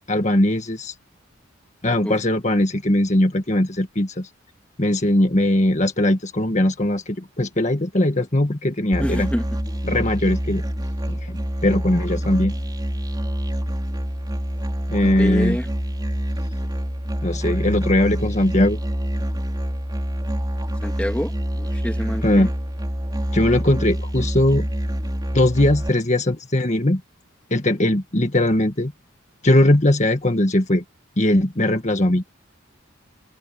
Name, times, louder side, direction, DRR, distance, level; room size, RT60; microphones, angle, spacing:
voice 1, 0.1-0.9 1.8-4.3 4.8-9.3 9.8-10.6 11.2-11.4 11.6-12.5 14.9-15.6 17.2-18.8 22.2-22.5 23.3-24.7 25.3-27.0 27.5-28.9 29.4-30.8 31.2-32.2, left 1 dB, 35° left, 1.7 m, -19 dB
Musical instrument, 8.9-25.9, equal, 20° right, 4.6 m, -26 dB
voice 2, 9.0-9.5 15.2-15.7 20.8-22.5, equal, 5° left, 2.2 m, -27 dB
head